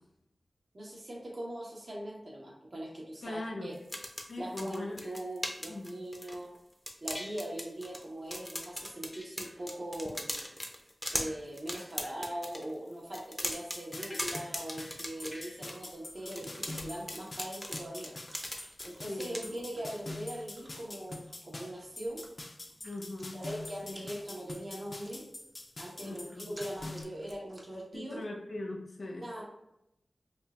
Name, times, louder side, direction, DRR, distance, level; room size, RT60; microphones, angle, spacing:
voice 1, 0.7-3.8 4.4-6.5 7.0-10.3 11.1-18.1 18.8-22.3 23.3-25.2 25.8-28.2 29.2-29.4, right 1 dB, 50° right, -4 dB, 1.1 m, -41 dB
voice 2, 3.2-3.7 4.3-5.0 5.7-5.9 19.0-19.5 22.8-23.4 23.8-24.0 26.0-26.5 27.9-29.3, left 2 dB, 70° left, -1 dB, 0.9 m, -40 dB
sound 1, 3.7-6.6 6.9-8.0 8.3-12.6 13.1-15.8 16.3-18.9 19.2-19.4, equal, 5° left, 0.6 m, -39 dB
sound 2, 13.5-27.0, left 2 dB, 45° left, 0.5 m, -45 dB
Chewing mastication, 15.0-27.8, right 1 dB, 35° right, 0.8 m, -58 dB
5.4 x 2.4 x 2.4 m, 0.84 s
wide cardioid pair, 65°, 0 cm